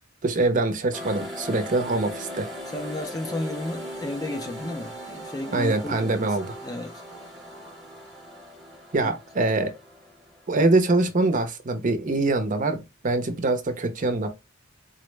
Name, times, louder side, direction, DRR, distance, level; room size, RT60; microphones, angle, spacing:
voice 1, 0.2-2.5 5.5-6.4 8.9-9.7 10.5-14.3, right 2 dB, 40° right, 0.6 m, -24 dB
sound 1, 0.9-11.2, equal, ahead, 0.9 m, -39 dB
voice 2, 2.7-6.3 6.6-6.9 9.0-9.1, left 1 dB, 20° left, 0.4 m, -33 dB
4.1 x 2.0 x 3.1 m
head